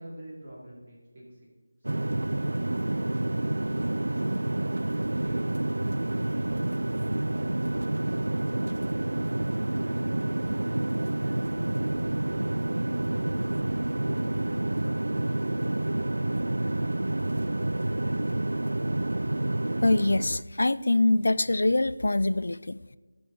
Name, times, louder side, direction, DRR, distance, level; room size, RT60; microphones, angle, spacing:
voice 1, 0.0-1.5 5.8-6.9 7.2-9.4 9.7-12.5 13.0-18.3, equal, 25° right, -5 dB, 2.5 m, -48 dB
sound 1, 1.8-20.4, right 1 dB, 90° right, 0.3 m, -28 dB
voice 2, 19.8-23.0, left 2 dB, 60° left, 16 dB, 0.4 m, -24 dB
13.0 x 6.2 x 3.9 m, 1.3 s
figure-of-eight pair, 175°, 0 cm